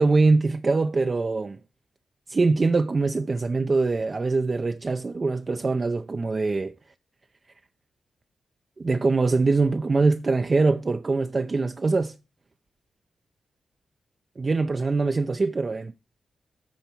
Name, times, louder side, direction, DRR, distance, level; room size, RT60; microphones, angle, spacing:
voice 1, 0.0-1.6 2.3-6.7 8.8-12.1 14.4-15.9, right 3 dB, 40° right, 0.5 m, -23 dB
12.5 x 4.5 x 4.5 m
cardioid pair, 70°, 0 cm